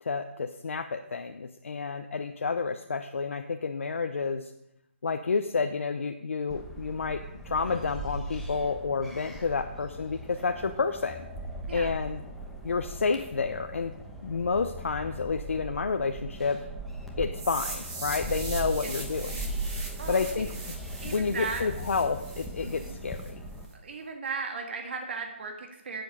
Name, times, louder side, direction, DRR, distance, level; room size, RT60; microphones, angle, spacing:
voice 1, 0.0-4.5 5.0-11.2 11.7-12.2 12.6-13.9 14.2-16.6 17.2-19.5 20.1-20.5 21.0-23.4, left 4 dB, 75° left, 6 dB, 0.7 m, -30 dB
sound 1, 6.5-23.7, right 1 dB, ahead, 1.0 m, -39 dB
sound 2, 17.4-23.3, right 3 dB, 30° right, 2.8 m, -41 dB
voice 2, 21.0-21.7 22.6-23.0 23.7-26.0, right 4 dB, 55° right, 3 dB, 1.9 m, -36 dB
11.5 x 7.8 x 5.4 m, 0.83 s
hypercardioid pair, 160°, 7 cm